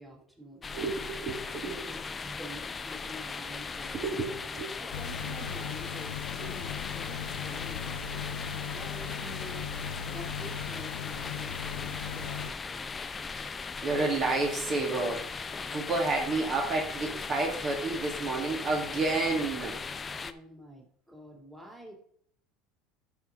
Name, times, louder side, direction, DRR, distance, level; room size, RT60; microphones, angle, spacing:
voice 1, 0.0-0.6 1.6-3.9 4.8-8.2 8.7-9.7 10.1-12.9 20.2-21.9, equal, 5° right, -1 dB, 2.4 m, -47 dB
sound 1, 0.6-20.3, left 4 dB, 25° left, 0.5 m, -38 dB
voice 2, 0.7-1.9 3.9-4.7 6.4-6.5 11.2-11.3 13.4-19.8, right 3 dB, 45° right, 0 dB, 1.8 m, -31 dB
sound 2, 4.9-12.5, left 8 dB, 90° left, 0.5 m, -38 dB
12.5 x 5.0 x 3.7 m, 0.64 s
supercardioid pair, 100°, 0 cm